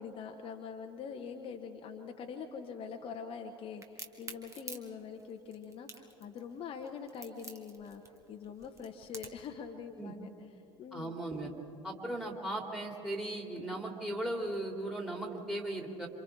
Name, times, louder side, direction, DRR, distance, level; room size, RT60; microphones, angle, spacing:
voice 1, 0.0-8.0 8.3-10.3 10.8-11.2, left 6 dB, 35° left, 4 dB, 1.2 m, -44 dB
Crack, 3.8-9.5, right 3 dB, 20° right, 1.9 m, -47 dB
voice 2, 10.9-11.5 11.8-16.1, right 1 dB, 5° right, 2 dB, 3.4 m, -37 dB
28.0 x 27.0 x 3.8 m, 3.0 s
figure-of-eight pair, 65°, 15 cm